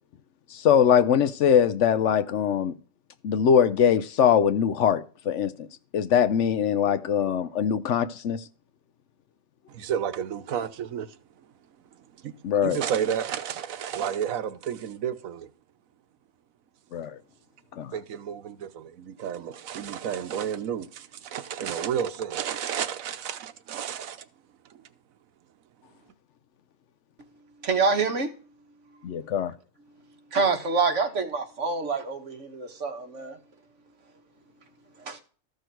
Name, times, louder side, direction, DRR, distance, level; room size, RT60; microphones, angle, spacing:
voice 1, 0.5-2.7 3.2-5.7 5.9-8.4 12.4-12.8 16.9-17.2 17.8-17.9 29.0-29.5, left 8 dB, 65° left, 0.9 m, -22 dB
voice 2, 9.7-11.1 12.2-12.3 12.6-15.5 17.9-24.3, right 8 dB, 85° right, 1.3 m, -31 dB
voice 3, 27.6-28.3 30.3-33.4 35.1-35.2, right 4 dB, 65° right, 1.6 m, -26 dB
13.5 x 6.5 x 4.5 m
omnidirectional pair, 1.4 m